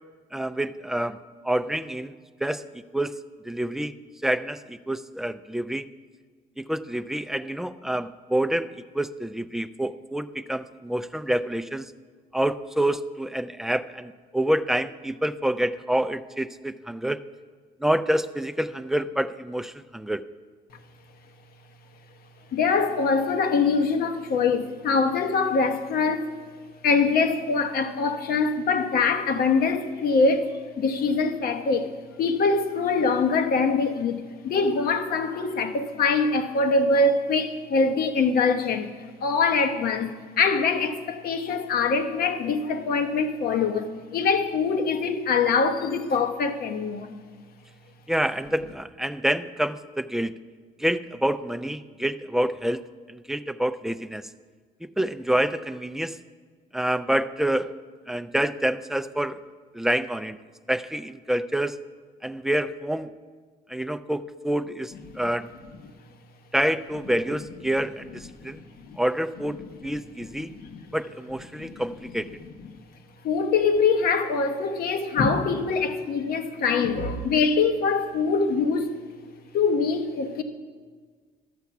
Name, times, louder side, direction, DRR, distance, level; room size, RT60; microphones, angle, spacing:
voice 1, 0.3-2.7 2.9-3.1 3.4-3.9 4.2-5.8 6.6-11.9 12.3-17.2 17.8-20.2 48.1-50.3 50.8-54.3 54.8-56.2 56.7-57.8 58.1-59.4 59.7-60.4 60.7-61.8 62.2-63.1 63.7-65.5 66.5-68.6 69.0-70.5 70.9-72.3, right 1 dB, ahead, 0.3 m, -27 dB
voice 2, 22.5-26.3 26.8-31.9 32.2-38.9 39.2-47.1 68.4-69.0 70.5-70.8 71.6-71.7 73.2-78.9 79.5-80.4, left 4 dB, 65° left, 1.0 m, -23 dB
12.5 x 7.0 x 5.8 m
cardioid pair, 110°, 17 cm